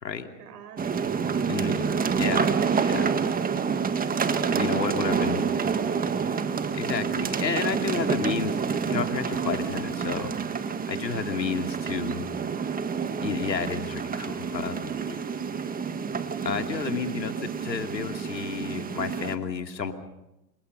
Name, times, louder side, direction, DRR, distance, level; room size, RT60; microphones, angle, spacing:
voice 1, 0.2-2.2 11.9-12.5 14.4-15.7, right 6 dB, 70° right, 6 dB, 6.2 m, -47 dB
sound 1, 0.8-19.4, right 6 dB, 15° right, 1.7 m, -28 dB
voice 2, 1.5-3.1 4.3-5.5 6.7-10.3 10.9-12.3 13.2-14.9 16.4-19.9, left 6 dB, 90° left, 5 dB, 2.8 m, -31 dB
29.0 x 25.5 x 5.5 m, 0.92 s
hypercardioid pair, 100°, 49 cm